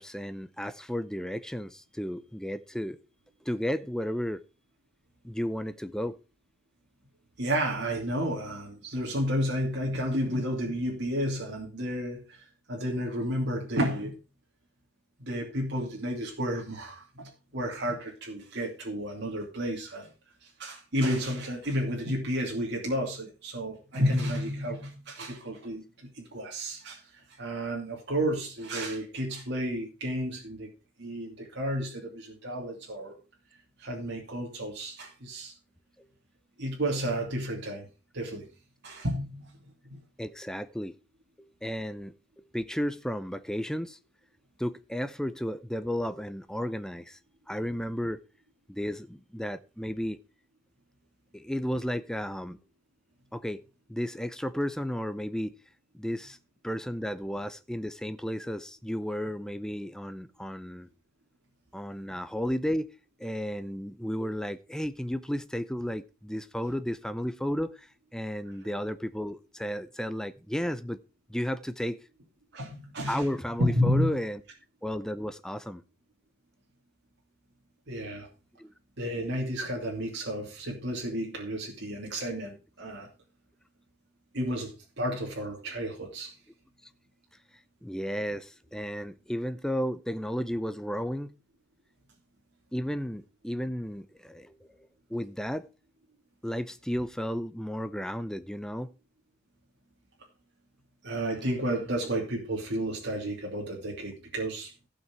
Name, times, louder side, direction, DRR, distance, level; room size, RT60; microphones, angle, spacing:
voice 1, 0.0-3.0 3.4-4.4 5.2-6.2 36.0-36.1 40.2-41.0 41.4-44.0 44.6-47.2 47.5-48.2 48.7-50.2 51.3-52.6 53.3-53.6 53.9-55.5 55.9-56.4 56.6-60.9 61.7-62.9 63.2-71.0 71.3-72.0 73.1-74.4 74.8-75.8 78.6-78.7 87.8-91.3 92.7-94.7 95.1-95.7 96.4-98.9, equal, 5° left, 0.5 m, -33 dB
voice 2, 7.4-12.4 12.7-14.2 15.2-20.1 20.4-27.0 27.4-30.7 31.0-33.2 33.8-35.5 36.6-37.9 38.1-38.5 38.8-39.5 39.9-40.0 72.5-73.3 73.6-74.1 77.9-78.3 79.0-83.1 84.3-86.3 101.0-104.7, equal, 55° right, 2.7 m, -31 dB
15.5 x 5.9 x 4.6 m
head